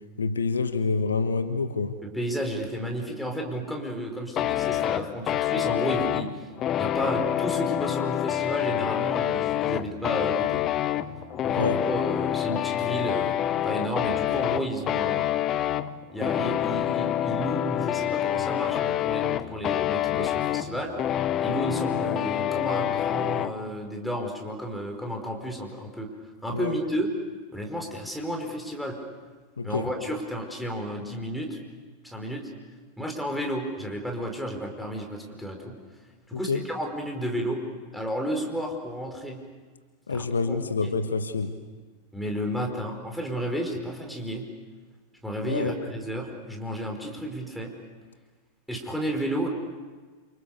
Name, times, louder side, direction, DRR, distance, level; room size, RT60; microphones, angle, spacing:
voice 1, 0.2-2.0 11.6-11.8 26.5-26.7 29.6-29.9 36.3-36.6 40.1-41.6 45.4-45.7, left 4 dB, 70° left, 10 dB, 1.3 m, -27 dB
voice 2, 2.0-6.5 6.8-10.6 11.4-15.3 16.1-20.9 21.4-26.1 26.4-27.1 27.5-29.0 29.6-31.6 32.0-32.5 33.0-35.7 36.3-39.4 40.1-40.6 40.8-40.9 42.1-44.4 45.2-47.7 48.7-49.5, equal, ahead, 1 dB, 5.0 m, -32 dB
sound 1, 4.4-23.5, left 12 dB, 30° left, 0.8 m, -27 dB
28.5 x 27.0 x 6.8 m, 1.4 s
figure-of-eight pair, 90°, 0 cm